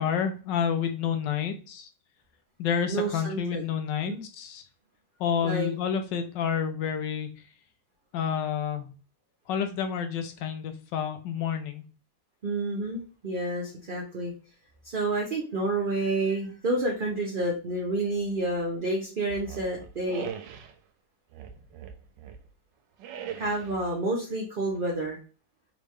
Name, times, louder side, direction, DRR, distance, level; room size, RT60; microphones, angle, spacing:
voice 1, 0.0-1.9 2.6-4.6 5.2-7.3 8.1-8.9 9.5-11.8, left 7 dB, 80° left, 7 dB, 1.4 m, -29 dB
voice 2, 2.8-3.6 4.1-4.2 5.4-5.7 12.4-14.3 14.8-20.3 23.4-25.2, right 2 dB, 45° right, -2 dB, 0.7 m, -29 dB
sound 1, 19.3-20.8 21.3-22.5 23.0-23.8, right 8 dB, 90° right, 1.3 m, -40 dB
3.8 x 3.4 x 3.1 m, 0.36 s
omnidirectional pair, 1.9 m